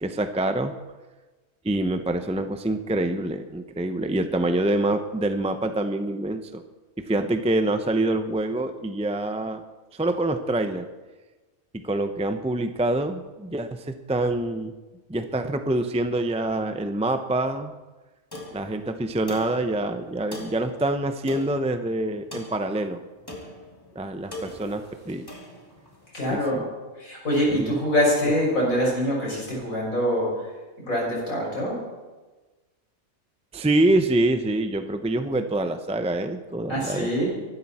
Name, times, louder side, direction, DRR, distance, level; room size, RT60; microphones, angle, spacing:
voice 1, 0.0-0.7 1.6-6.6 7.0-9.6 9.9-10.9 11.8-14.7 15.1-17.7 18.5-23.0 23.9-25.3 26.3-26.6 27.5-27.8 33.5-37.1, right 1 dB, 10° right, 8 dB, 0.3 m, -26 dB
sound 1, 18.3-26.1, left 1 dB, 15° left, 2.7 m, -42 dB
voice 2, 26.1-26.6 27.0-30.5 30.9-31.8 36.7-37.3, equal, 80° left, -3 dB, 6.4 m, -24 dB
23.5 x 12.5 x 4.3 m, 1.2 s
omnidirectional pair, 1.4 m